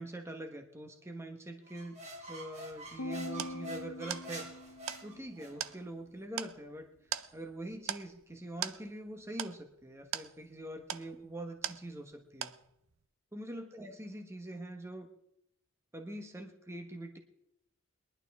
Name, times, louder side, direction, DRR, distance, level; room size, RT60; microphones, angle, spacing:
voice 1, 0.0-2.0 2.3-4.4 5.0-6.9 7.3-12.5 13.3-15.1 15.9-17.2, right 1 dB, 15° right, 4 dB, 1.1 m, -44 dB
sound 1, 1.7-5.7, right 1 dB, 35° right, 2.1 m, -46 dB
sound 2, 2.7-12.2 12.4-13.0, right 10 dB, 70° right, 0.6 m, -42 dB
sound 3, 3.0-5.4, left 2 dB, 75° left, 0.8 m, -43 dB
22.0 x 11.5 x 3.5 m, 0.80 s
head